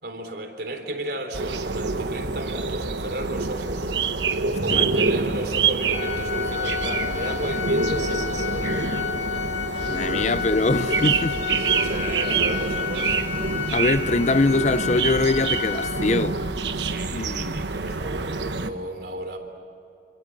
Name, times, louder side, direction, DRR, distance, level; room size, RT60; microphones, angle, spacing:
voice 1, 0.0-3.9 4.6-8.8 11.6-13.3 16.7-19.4, right 1 dB, 65° right, 3.7 m, -34 dB
sound 1, 1.3-18.7, right 4 dB, 85° right, 1.2 m, -26 dB
voice 2, 4.4-4.9 9.9-11.8 13.7-16.4 17.1-17.6, left 3 dB, 40° left, 0.6 m, -23 dB
sound 2, 4.6-10.8, equal, 25° right, 1.9 m, -42 dB
Organ, 5.9-16.5, left 7 dB, 85° left, 3.1 m, -31 dB
27.5 x 27.0 x 7.6 m
head